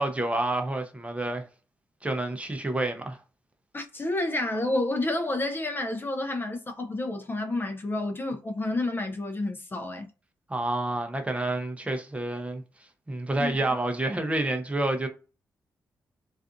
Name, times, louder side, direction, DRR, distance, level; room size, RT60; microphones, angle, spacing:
voice 1, 0.0-1.4 2.0-3.2 10.5-12.6 13.1-15.1, right 2 dB, 20° right, 0.6 m, -28 dB
voice 2, 3.7-10.1 13.4-13.7, left 2 dB, 30° left, 0.5 m, -30 dB
2.4 x 2.4 x 2.5 m
supercardioid pair, 50°, 7 cm